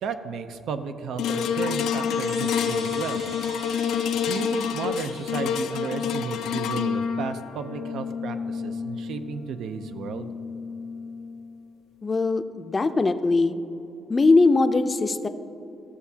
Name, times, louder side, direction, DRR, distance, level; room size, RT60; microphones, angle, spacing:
voice 1, 0.0-3.5 4.1-10.3, right 6 dB, 75° right, 9 dB, 0.5 m, -33 dB
sound 1, 1.2-11.6 12.1-12.2, left 7 dB, 85° left, 0.4 m, -29 dB
Chime, 1.7-6.4, right 3 dB, 45° right, 0.7 m, -45 dB
voice 2, 12.0-13.5 14.1-15.3, left 3 dB, 30° left, 9 dB, 0.5 m, -21 dB
13.5 x 7.0 x 2.8 m, 2.9 s
cardioid pair, 90°, 0 cm